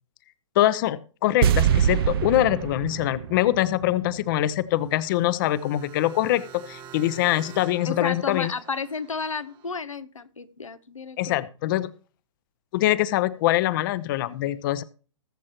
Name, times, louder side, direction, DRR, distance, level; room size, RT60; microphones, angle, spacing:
voice 1, 0.6-8.5 11.2-11.9 12.7-14.8, left 14 dB, 40° left, 15 dB, 0.8 m, -24 dB
sound 1, 1.4-4.6 4.9-5.0, right 9 dB, 50° right, 0.5 m, -24 dB
sound 2, 4.7-9.8, right 8 dB, 30° right, 1.3 m, -47 dB
voice 2, 7.9-11.4, left 5 dB, 90° left, 11 dB, 0.9 m, -32 dB
21.0 x 7.4 x 3.0 m, 0.38 s
figure-of-eight pair, 120°, 16 cm